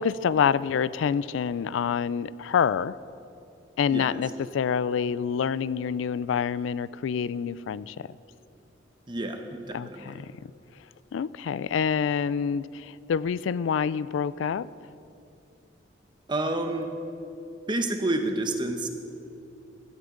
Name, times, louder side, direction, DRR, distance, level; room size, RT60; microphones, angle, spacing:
voice 1, 0.0-2.9 3.8-4.3 4.5-8.1 9.7-10.3 11.1-14.7, left 7 dB, 90° left, 19 dB, 0.3 m, -27 dB
voice 2, 3.8-4.2 9.1-10.2 16.3-16.9 17.7-18.9, right 2 dB, 25° right, 5 dB, 0.9 m, -29 dB
17.0 x 13.0 x 3.8 m, 2.7 s
head